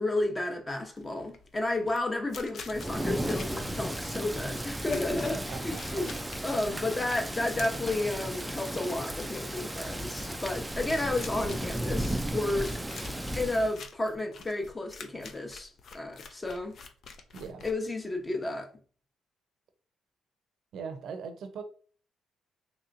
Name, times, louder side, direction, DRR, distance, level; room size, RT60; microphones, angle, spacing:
voice 1, 0.0-6.0 6.4-12.7 13.0-16.8 17.6-18.7, left 2 dB, 20° left, 0.8 m, -32 dB
sound 1, 0.9-18.3, left 5 dB, 60° left, 0.5 m, -48 dB
Thunder / Rain, 2.7-13.8, right 1 dB, 5° right, 0.3 m, -35 dB
voice 2, 5.5-6.0 17.3-17.7 20.7-21.6, right 5 dB, 70° right, 0.6 m, -40 dB
3.2 x 2.8 x 2.5 m
cardioid pair, 90°, 0 cm